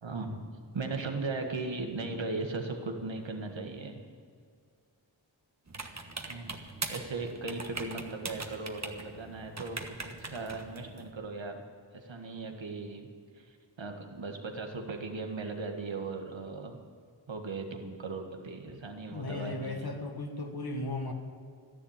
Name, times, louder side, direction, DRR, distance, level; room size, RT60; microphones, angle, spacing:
voice 1, 0.0-0.4 0.7-4.0 6.2-6.5 6.9-11.6 11.9-13.1 13.3-16.8 17.3-19.9, right 3 dB, 80° right, 4 dB, 1.7 m, -38 dB
sound 1, 5.7-11.1, right 3 dB, 35° right, 1.4 m, -41 dB
voice 2, 19.1-21.1, left 2 dB, 55° left, 3 dB, 1.6 m, -36 dB
13.0 x 11.0 x 8.8 m, 2.1 s
cardioid pair, 45°, 44 cm